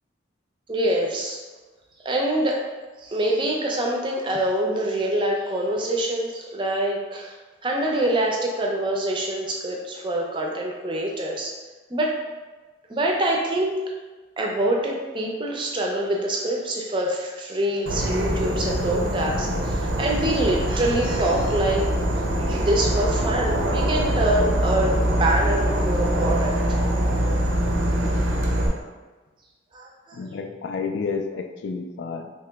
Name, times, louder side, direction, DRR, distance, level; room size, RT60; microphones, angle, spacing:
voice 1, 0.7-1.4 2.0-2.6 3.0-7.4 7.6-11.5 11.9-12.2 12.9-13.7 14.4-21.9 22.5-26.5 29.7-30.3, right 1 dB, 25° right, -1 dB, 0.4 m, -25 dB
Insect / Frog, 17.9-28.7, right 1 dB, 90° right, 0.6 m, -23 dB
voice 2, 30.2-32.3, left 5 dB, 70° left, 6 dB, 0.3 m, -30 dB
2.9 x 2.9 x 3.4 m, 1.3 s
head